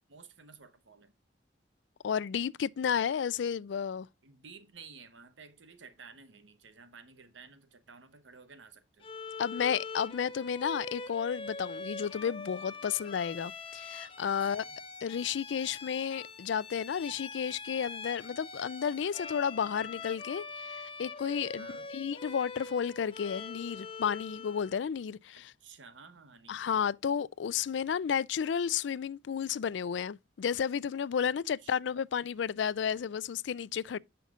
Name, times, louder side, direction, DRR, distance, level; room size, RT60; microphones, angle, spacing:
voice 1, 0.1-1.1 4.2-9.1 14.4-14.8 21.6-21.9 25.3-26.7 31.6-32.0, right 5 dB, 85° right, 1.1 m, -53 dB
voice 2, 2.0-4.1 9.4-14.6 15.0-25.4 26.5-34.0, left 7 dB, 75° left, 0.4 m, -32 dB
Bowed string instrument, 9.0-24.8, left 4 dB, 30° left, 0.9 m, -43 dB
7.2 x 5.8 x 3.7 m
head